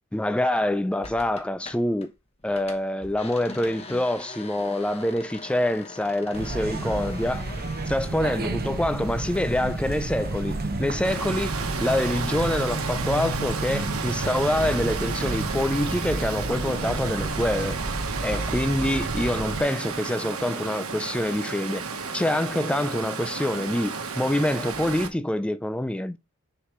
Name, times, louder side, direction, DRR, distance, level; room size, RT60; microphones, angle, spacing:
voice 1, 0.1-2.1 2.4-7.5 7.9-17.8 18.2-21.8 22.1-26.2, left 1 dB, 5° left, 0.3 m, -26 dB
sound 1, 1.0-2.1 2.4-12.8 13.1-17.9, left 3 dB, 30° left, 1.0 m, -45 dB
sound 2, 6.3-19.6, right 2 dB, 45° right, 0.7 m, -31 dB
Water, 11.0-25.1, right 5 dB, 85° right, 1.2 m, -33 dB
6.6 x 4.9 x 3.1 m
head